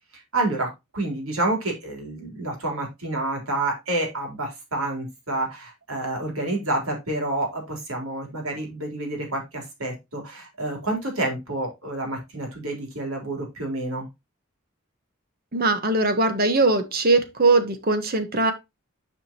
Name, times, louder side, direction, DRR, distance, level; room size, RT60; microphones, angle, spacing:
voice 1, 0.1-14.1, right 2 dB, 85° right, 2 dB, 3.7 m, -29 dB
voice 2, 15.5-18.5, right 3 dB, 45° right, 9 dB, 1.4 m, -21 dB
9.6 x 5.1 x 3.0 m, 0.22 s
head